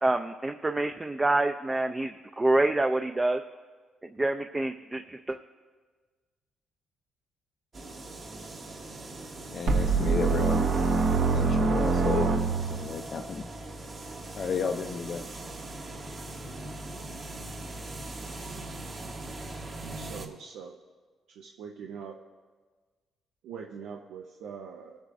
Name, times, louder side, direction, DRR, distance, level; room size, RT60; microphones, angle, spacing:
voice 1, 0.0-3.4 4.2-5.4, right 2 dB, 20° right, 5 dB, 0.4 m, -27 dB
sound 1, 7.7-20.3, right 2 dB, 45° right, 1.2 m, -41 dB
voice 2, 9.5-13.5 14.3-15.3, left 5 dB, 50° left, 5 dB, 0.4 m, -33 dB
sound 2, 9.7-12.9, right 4 dB, 70° right, 1.1 m, -24 dB
voice 3, 19.8-20.8 21.4-22.2 23.4-25.0, right 6 dB, 85° right, 1 dB, 0.6 m, -42 dB
23.5 x 8.0 x 2.6 m, 1.4 s
cardioid pair, 90°, 0 cm